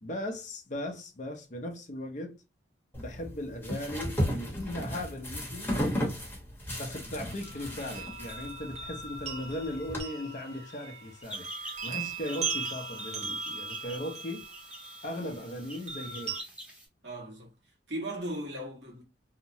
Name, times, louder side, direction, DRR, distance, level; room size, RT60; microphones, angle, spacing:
voice 1, 0.0-2.3 3.0-5.7 6.8-11.5 11.8-14.4 15.0-16.3, left 1 dB, 45° left, 0.6 m, -38 dB
sound 1, 2.9-10.0, equal, 10° left, 0.9 m, -35 dB
sound 2, 7.4-16.4, right 5 dB, 40° right, 0.7 m, -39 dB
sound 3, 11.2-16.9, right 1 dB, 5° right, 0.7 m, -46 dB
voice 2, 17.0-17.5 17.9-19.0, right 1 dB, 70° right, 1.2 m, -37 dB
2.8 x 2.1 x 2.7 m
head